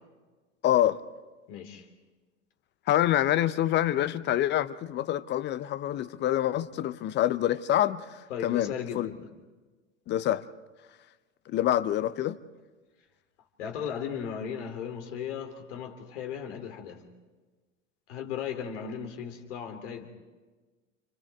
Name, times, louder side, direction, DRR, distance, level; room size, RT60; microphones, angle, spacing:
voice 1, 0.6-1.0 2.9-9.1 10.1-10.4 11.5-12.4, left 12 dB, 25° left, 0.7 m, -26 dB
voice 2, 1.5-1.9 8.3-9.3 13.6-17.0 18.1-20.1, left 8 dB, 60° left, 3.2 m, -36 dB
29.5 x 28.0 x 3.6 m
figure-of-eight pair, 90°, 40 cm